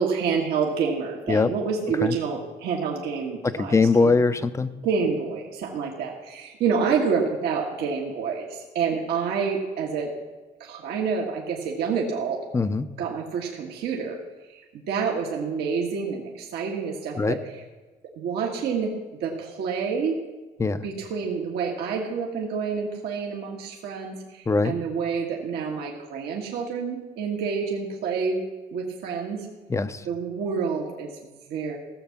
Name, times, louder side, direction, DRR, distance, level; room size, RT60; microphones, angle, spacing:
voice 1, 0.0-4.2 4.8-10.1 10.6-12.4 13.0-14.2 14.5-17.6 18.2-18.9 19.2-20.2 20.8-28.4 28.7-29.5 30.1-31.8, right 5 dB, 75° right, -1 dB, 1.6 m, -28 dB
voice 2, 3.6-4.7 12.5-12.9 17.2-17.4 20.6-20.9 24.5-24.7 29.7-30.0, left 4 dB, 15° left, 12 dB, 0.6 m, -21 dB
16.0 x 7.2 x 5.9 m, 1.2 s
cardioid pair, 110°, 17 cm